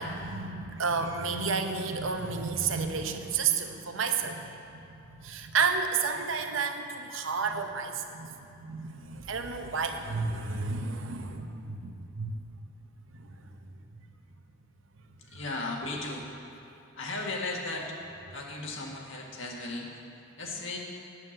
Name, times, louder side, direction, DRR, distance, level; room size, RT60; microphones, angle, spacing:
voice 1, 0.0-12.4 13.1-13.6, right 5 dB, 80° right, 6 dB, 0.8 m, -31 dB
voice 2, 15.2-16.3 16.9-20.0 20.4-20.8, left 2 dB, 75° left, -1 dB, 1.7 m, -36 dB
9.5 x 7.4 x 7.8 m, 2.7 s
head